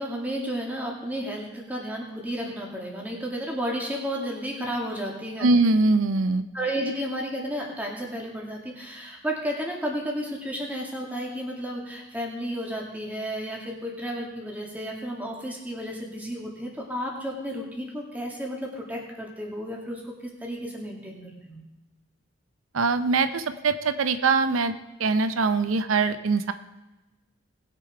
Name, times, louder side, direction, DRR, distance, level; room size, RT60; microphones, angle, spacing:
voice 1, 0.0-5.5 6.5-21.6, equal, 10° right, -2 dB, 2.2 m, -32 dB
voice 2, 5.4-6.4 22.7-24.7 25.0-26.5, right 3 dB, 85° right, 11 dB, 0.6 m, -22 dB
19.5 x 6.8 x 4.8 m, 1.1 s
head